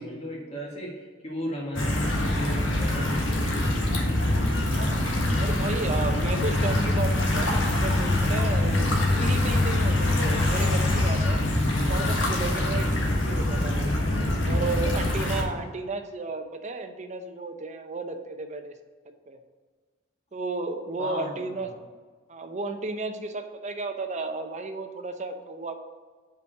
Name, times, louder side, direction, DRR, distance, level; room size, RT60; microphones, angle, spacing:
voice 1, 0.0-3.6 21.0-21.5, equal, 35° left, -2 dB, 1.7 m, -35 dB
sound 1, 1.7-15.4, left 1 dB, 90° left, 1.4 m, -24 dB
voice 2, 4.6-5.0 5.4-11.4 11.8-14.0 14.4-18.7 19.3-19.4 20.3-21.7 22.3-25.7, right 3 dB, 40° right, 7 dB, 0.7 m, -33 dB
5.6 x 5.0 x 6.4 m, 1.5 s
head